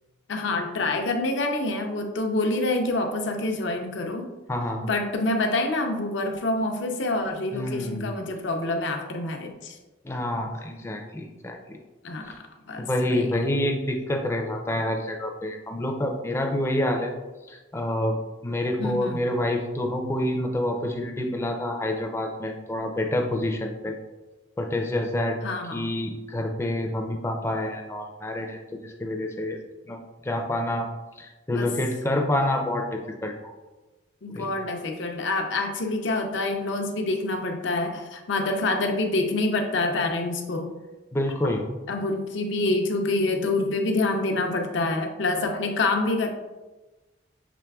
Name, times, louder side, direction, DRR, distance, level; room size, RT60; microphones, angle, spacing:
voice 1, 0.3-4.3 4.8-9.8 12.0-13.3 18.8-19.2 25.4-25.9 31.5-31.7 34.2-40.7 41.9-46.3, left 2 dB, 70° left, 3 dB, 0.6 m, -27 dB
voice 2, 4.5-4.8 7.5-8.1 10.0-11.6 12.2-12.4 12.8-17.1 17.5-18.2 18.4-23.9 24.6-25.4 25.7-29.6 29.9-30.9 31.2-33.5 34.3-34.5 41.1-41.6, left 1 dB, 15° left, 2 dB, 0.4 m, -27 dB
6.0 x 3.3 x 2.3 m, 1.1 s
head